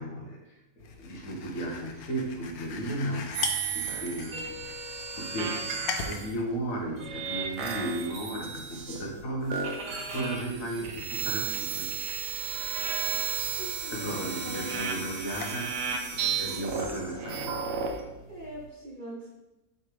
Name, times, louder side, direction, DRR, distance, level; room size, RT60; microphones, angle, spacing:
voice 1, 0.0-3.4 3.7-11.9 13.9-15.8 16.1-17.7, right 1 dB, 70° left, 0 dB, 1.7 m, -35 dB
sound 1, 0.8-18.7, left 5 dB, 90° left, 1.2 m, -43 dB
sound 2, 3.3-6.3 7.0-9.2 9.5-18.0, right 6 dB, 70° right, 1.2 m, -33 dB
voice 2, 13.5-14.8 18.3-19.3, right 1 dB, 35° right, -4 dB, 1.1 m, -42 dB
7.2 x 3.4 x 5.0 m, 1.0 s
omnidirectional pair, 1.5 m